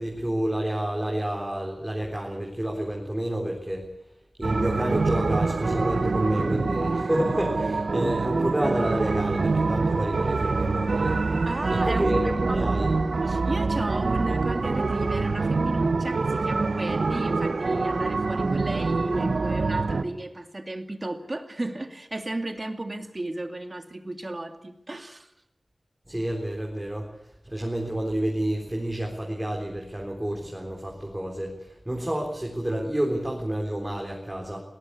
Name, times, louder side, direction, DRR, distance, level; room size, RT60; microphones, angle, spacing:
voice 1, 0.0-3.9 4.4-11.2 11.7-12.9 26.1-27.1 27.4-34.6, right 1 dB, 15° right, 0 dB, 3.9 m, -29 dB
sound 1, 4.4-20.0, right 3 dB, 75° right, 1.3 m, -25 dB
voice 2, 11.5-25.3, right 2 dB, 35° right, 7 dB, 2.5 m, -34 dB
20.5 x 18.0 x 8.4 m, 0.83 s
wide cardioid pair, 65°, 0 cm